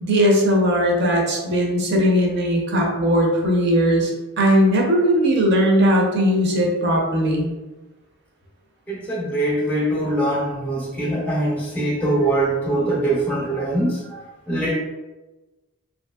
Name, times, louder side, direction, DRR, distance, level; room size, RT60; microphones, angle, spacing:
voice 1, 0.0-4.1 4.4-7.5, equal, 50° right, -1 dB, 0.6 m, -18 dB
voice 2, 8.9-14.8, right 1 dB, 5° left, -4 dB, 0.5 m, -23 dB
2.8 x 2.6 x 2.3 m, 1.1 s
head